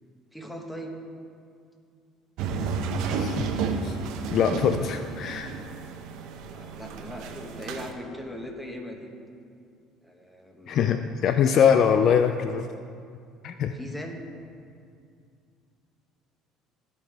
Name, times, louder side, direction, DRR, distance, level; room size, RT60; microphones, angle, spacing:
voice 1, 0.3-1.0 6.5-9.1 10.0-10.7 13.7-14.2, equal, 5° left, 1 dB, 1.5 m, -39 dB
sound 1, 2.4-7.9, right 5 dB, 70° right, 0.8 m, -31 dB
voice 2, 3.1-3.5 3.8-3.9 4.3-5.5 10.7-12.7 13.4-13.7, left 7 dB, 55° left, 8 dB, 0.4 m, -23 dB
16.0 x 5.8 x 3.5 m, 2.3 s
supercardioid pair, 90°, 0 cm